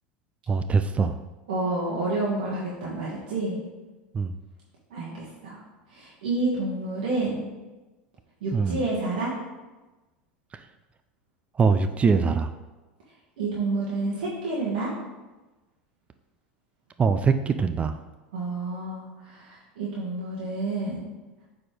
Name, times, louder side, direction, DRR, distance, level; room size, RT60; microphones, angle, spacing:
voice 1, 0.5-1.2 4.1-4.3 8.5-8.8 10.5-10.6 11.6-12.5 17.0-18.0, right 5 dB, 25° right, 9 dB, 0.4 m, -23 dB
voice 2, 1.5-3.6 4.9-5.6 5.9-7.5 8.4-9.3 13.4-14.9 18.3-21.1, right 2 dB, 75° right, -6 dB, 1.7 m, -29 dB
8.6 x 4.3 x 3.4 m, 1.2 s
hypercardioid pair, 90°, 5 cm